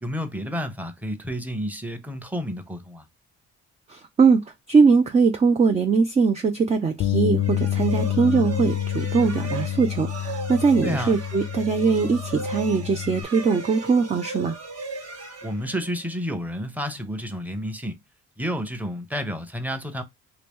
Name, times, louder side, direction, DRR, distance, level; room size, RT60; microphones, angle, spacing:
voice 1, 0.0-3.0 10.8-11.1 15.4-18.0 18.4-20.0, equal, 5° right, 0.8 m, -30 dB
voice 2, 3.9-14.6, right 5 dB, 20° right, 0.4 m, -21 dB
Bass guitar, 7.0-13.2, left 11 dB, 50° left, 0.4 m, -28 dB
sound 1, 7.4-16.1, right 3 dB, 55° right, 1.3 m, -36 dB
3.0 x 2.8 x 3.5 m
cardioid pair, 90°, 30 cm